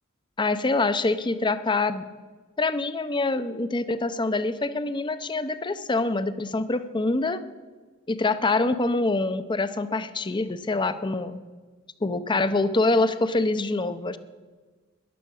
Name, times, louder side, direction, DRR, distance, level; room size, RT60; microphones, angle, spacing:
voice 1, 0.4-2.1 2.6-7.4 8.1-11.4 12.0-14.2, left 2 dB, 25° left, 13 dB, 0.6 m, -25 dB
14.0 x 10.5 x 6.3 m, 1.4 s
head